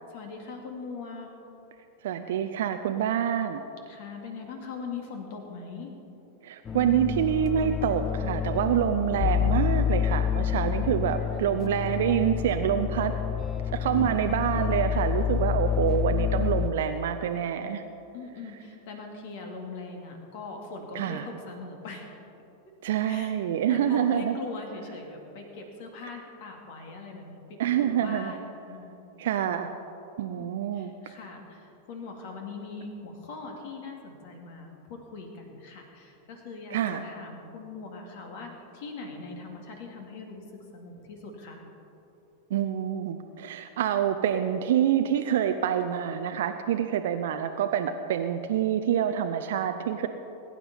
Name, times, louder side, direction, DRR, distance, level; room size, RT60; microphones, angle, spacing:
voice 1, 0.1-1.3 3.9-5.9 11.3-11.5 14.0-14.3 18.1-22.1 23.0-23.3 23.7-29.1 30.3-41.6, left 4 dB, 50° left, 2 dB, 2.3 m, -41 dB
voice 2, 2.0-3.6 6.4-13.1 13.7-17.8 20.9-21.3 22.8-24.4 27.6-28.3 29.2-29.7 30.2-30.9 36.7-37.0 42.5-50.1, right 9 dB, 55° right, 7 dB, 0.6 m, -26 dB
sound 1, 6.7-16.7, left 9 dB, 25° left, 0.5 m, -28 dB
21.0 x 9.8 x 4.2 m, 3.0 s
figure-of-eight pair, 90°, 0 cm